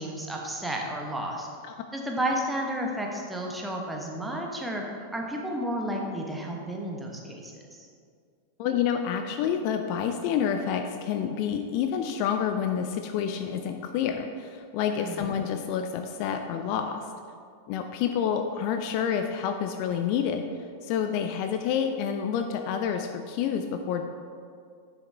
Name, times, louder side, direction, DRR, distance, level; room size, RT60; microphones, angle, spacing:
voice 1, 0.0-1.5 1.9-7.9 15.0-15.3, right 1 dB, 5° right, 0 dB, 1.2 m, -32 dB
voice 2, 8.6-17.1 17.7-20.5 20.8-24.1, left 8 dB, 45° left, 6 dB, 0.5 m, -28 dB
10.5 x 6.2 x 3.4 m, 2.2 s
figure-of-eight pair, 90°, 0 cm